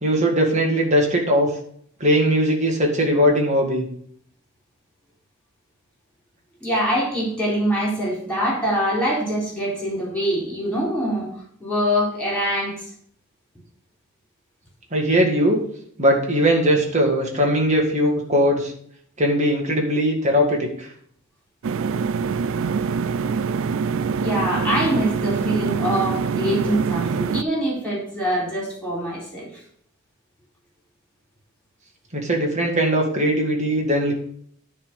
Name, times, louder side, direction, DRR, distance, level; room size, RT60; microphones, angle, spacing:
voice 1, 0.0-1.5 2.0-3.9 14.9-15.6 16.0-18.7 19.2-20.9 32.1-34.1, equal, 35° right, 0 dB, 1.9 m, -20 dB
voice 2, 6.6-11.3 11.6-12.8 24.2-29.6, equal, 5° left, -4 dB, 3.8 m, -24 dB
sound 1, 21.6-27.4, right 5 dB, 75° right, 0.4 m, -24 dB
9.8 x 3.7 x 6.7 m, 0.63 s
head